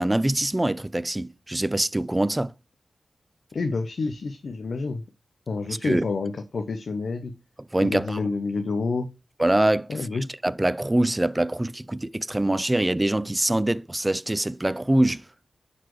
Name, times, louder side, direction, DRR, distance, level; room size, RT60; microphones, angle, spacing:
voice 1, 0.0-2.5 5.8-6.0 7.7-8.2 9.4-9.9 10.4-15.2, right 1 dB, 15° right, 0.3 m, -24 dB
voice 2, 3.5-5.0 5.5-7.3 7.8-9.1 9.9-10.3, left 3 dB, 65° left, 0.6 m, -28 dB
9.1 x 4.2 x 3.0 m
wide cardioid pair, 125°, 0 cm